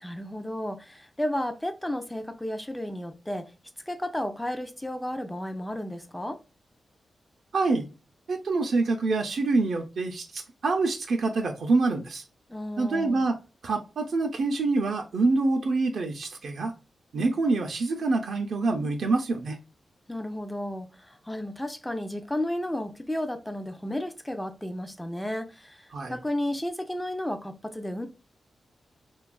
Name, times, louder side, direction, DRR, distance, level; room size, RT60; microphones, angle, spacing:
voice 1, 0.0-3.5 3.9-6.4 12.5-13.3 20.1-28.1, left 1 dB, 10° left, 0.4 m, -33 dB
voice 2, 7.5-7.9 8.3-12.2 12.8-13.4 13.6-16.7 17.1-19.6 25.9-26.2, right 3 dB, 70° right, 0.4 m, -26 dB
2.7 x 2.3 x 2.2 m
wide cardioid pair, 100°, 0 cm